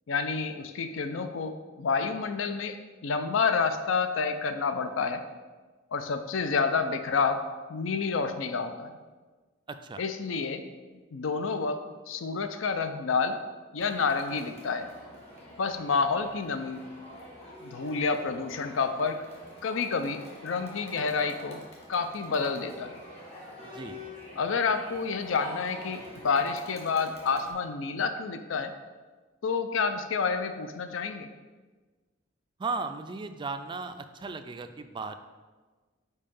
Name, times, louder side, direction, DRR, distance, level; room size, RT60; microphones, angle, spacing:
voice 1, 0.1-5.2 5.9-7.4 7.7-9.0 10.0-10.6 11.1-13.4 13.7-14.9 15.6-16.9 17.6-19.2 19.6-21.6 21.9-22.9 24.4-28.7 29.4-31.3, left 5 dB, 70° left, 9 dB, 0.5 m, -29 dB
voice 2, 9.7-10.0 23.6-24.0 32.6-35.2, right 4 dB, 25° right, 8 dB, 0.3 m, -36 dB
Crowd, 13.8-27.5, left 1 dB, 30° left, 1.6 m, -46 dB
5.5 x 4.7 x 5.3 m, 1.3 s
head